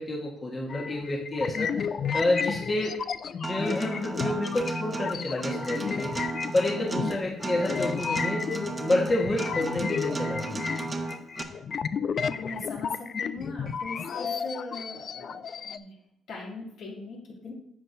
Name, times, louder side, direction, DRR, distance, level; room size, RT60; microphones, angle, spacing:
voice 1, 0.0-3.0 3.3-6.1 6.5-10.6, left 2 dB, 30° left, -2 dB, 1.4 m, -29 dB
sound 1, 0.7-15.8, left 6 dB, 50° left, 0.4 m, -33 dB
Acoustic guitar, 3.4-11.4, right 3 dB, 25° right, 1.0 m, -34 dB
voice 2, 12.2-16.0 16.3-17.5, left 3 dB, 75° left, -3 dB, 2.8 m, -40 dB
11.0 x 7.3 x 2.7 m, 0.76 s
cardioid pair, 100°, 0 cm